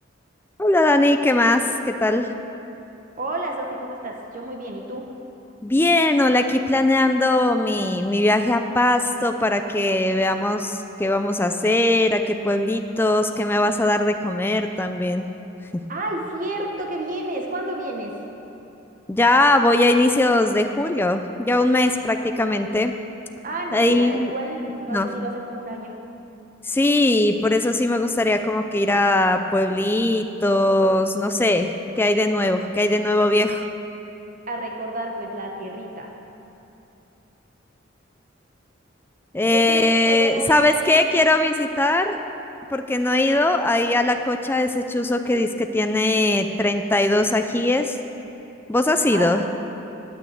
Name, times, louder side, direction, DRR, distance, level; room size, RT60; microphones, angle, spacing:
voice 1, 0.6-2.3 5.6-15.2 15.7-15.8 19.1-22.9 23.7-24.3 24.9-25.1 26.6-31.7 32.0-33.7 39.3-42.2 42.7-48.0 48.7-49.4, left 2 dB, 10° left, 7 dB, 0.4 m, -20 dB
voice 2, 3.2-5.0 15.9-18.2 23.4-26.0 34.5-36.1 39.4-41.0 49.1-49.5, right 2 dB, 45° right, 1 dB, 1.2 m, -30 dB
9.2 x 9.0 x 8.0 m, 2.9 s
head